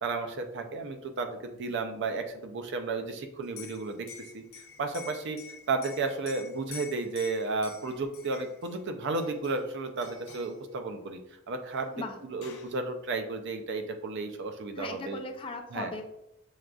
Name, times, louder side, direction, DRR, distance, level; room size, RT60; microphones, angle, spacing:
voice 1, 0.0-4.1 4.3-4.4 4.8-5.4 5.7-15.2 15.7-15.9, right 3 dB, 60° right, 6 dB, 0.5 m, -33 dB
Liquid, 3.4-8.7 9.2-9.7 10.0-10.6 11.8-11.9 12.1-12.8, left 6 dB, 80° left, 0.5 m, -47 dB
voice 2, 14.7-16.0, left 3 dB, 25° left, 4 dB, 0.4 m, -38 dB
6.3 x 2.4 x 2.3 m, 0.83 s
head